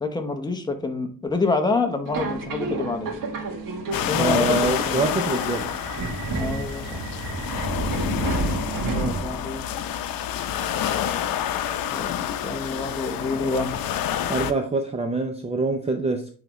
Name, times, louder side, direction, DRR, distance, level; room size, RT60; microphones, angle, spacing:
voice 1, 0.0-3.1 4.1-5.1 6.3-7.0 8.8-9.6 11.9-13.8, left 3 dB, 10° left, 5 dB, 0.9 m, -27 dB
Subway metro underground, 2.1-9.6, right 3 dB, 70° right, 1.5 m, -30 dB
sound 1, 3.9-14.5, left 10 dB, 80° left, 0.6 m, -28 dB
voice 2, 4.1-5.7 14.3-16.3, right 3 dB, 20° right, 3 dB, 0.6 m, -25 dB
9.1 x 3.5 x 3.1 m, 0.42 s
cardioid pair, 140°, 34 cm